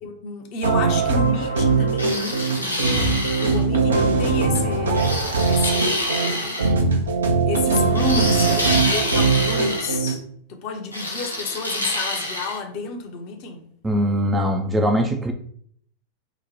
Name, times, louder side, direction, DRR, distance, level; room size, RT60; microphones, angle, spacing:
voice 1, 0.0-6.7 7.4-10.2 10.5-13.6, left 4 dB, 45° left, 0.7 m, -31 dB
sound 1, 0.6-10.1, right 4 dB, 70° right, 0.5 m, -21 dB
sound 2, 2.0-3.6 4.9-6.7 8.0-10.0 10.9-12.6, left 1 dB, 85° left, 0.6 m, -27 dB
voice 2, 13.8-15.3, equal, 10° right, 0.4 m, -21 dB
2.9 x 2.1 x 4.1 m
figure-of-eight pair, 90°, 0 cm